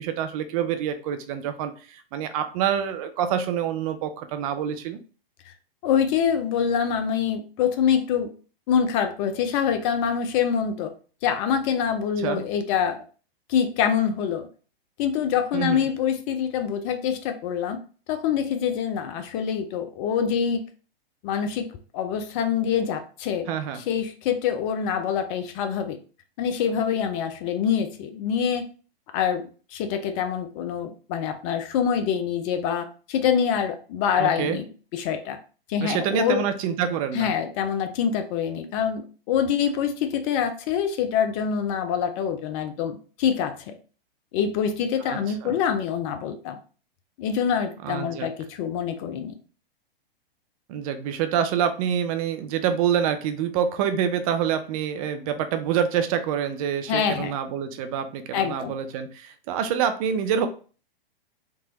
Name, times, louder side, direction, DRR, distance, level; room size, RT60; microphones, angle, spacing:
voice 1, 0.0-5.0 12.2-12.4 15.5-15.9 23.5-23.8 34.2-34.6 35.8-37.3 45.0-45.6 47.8-48.3 50.7-60.5, right 8 dB, 35° right, 9 dB, 0.4 m, -26 dB
voice 2, 5.8-8.3 8.7-10.9 11.2-13.0 13.5-14.5 15.0-17.8 18.1-20.6 21.2-21.7 21.9-23.5 23.8-26.0 26.4-28.6 29.1-29.4 29.7-35.4 35.7-36.4 37.1-43.8 44.3-46.6 47.2-49.3 56.9-57.3 58.3-58.7, left 8 dB, 35° left, 9 dB, 0.4 m, -25 dB
3.5 x 2.9 x 2.9 m, 0.38 s
hypercardioid pair, 110°, 30 cm